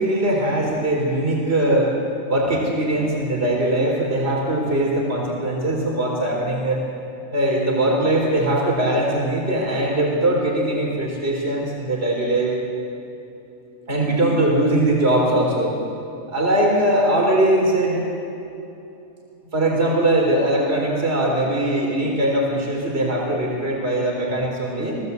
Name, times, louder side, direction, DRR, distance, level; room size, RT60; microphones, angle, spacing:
voice 1, 0.0-1.9 2.3-6.8 7.3-12.5 13.9-15.8 16.3-18.0 19.5-25.0, right 1 dB, 50° right, -1 dB, 4.2 m, -21 dB
28.5 x 17.5 x 8.3 m, 2.8 s
omnidirectional pair, 1.3 m